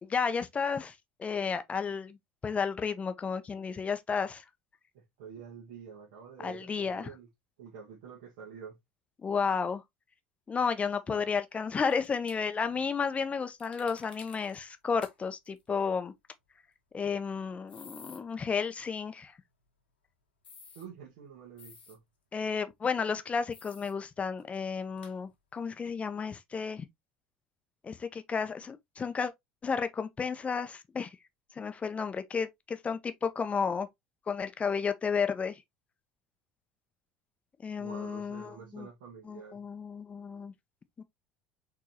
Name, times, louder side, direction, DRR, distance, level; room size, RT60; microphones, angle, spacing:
voice 1, 0.0-2.2 2.4-4.4 6.4-7.1 9.2-9.8 10.5-16.1 16.9-19.3 22.3-26.9 27.8-29.3 29.6-31.1 31.6-33.9 34.3-35.6 37.6-38.9 39.3-40.5 41.0-41.1, left 5 dB, 25° left, 0.8 m, -32 dB
voice 2, 4.9-7.3 7.6-8.8 11.1-11.3 12.7-12.8 20.7-22.0 37.8-39.6, right 6 dB, 60° right, 1.6 m, -48 dB
sound 1, 11.9-12.4 13.6-14.6 15.0-15.1 15.4-15.6 17.7-18.2 20.4-20.9 21.6-22.0 23.5-23.9 24.4-24.5 25.0-25.1, left 5 dB, 80° left, 1.4 m, -52 dB
4.6 x 4.0 x 2.8 m
figure-of-eight pair, 70°, 5 cm